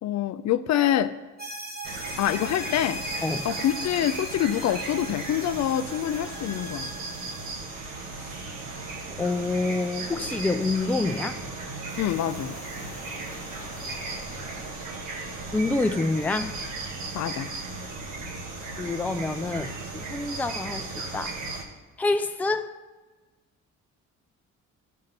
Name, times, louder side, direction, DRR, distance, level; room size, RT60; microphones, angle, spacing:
voice 1, 0.0-1.2 2.2-3.0 3.4-6.9 12.0-12.6 17.1-17.5, left 11 dB, 65° left, 0.5 m, -26 dB
sound 1, 1.4-7.5, equal, 30° right, 1.4 m, -39 dB
sound 2, 1.8-21.6, right 3 dB, 85° right, 1.3 m, -36 dB
voice 2, 9.2-11.4 15.5-16.6 18.8-20.9 21.1-21.4 22.0-22.7, left 3 dB, 5° left, 0.4 m, -27 dB
sound 3, 11.9-16.3, left 3 dB, 25° left, 1.2 m, -48 dB
13.5 x 5.5 x 4.0 m
cardioid pair, 90°, 30 cm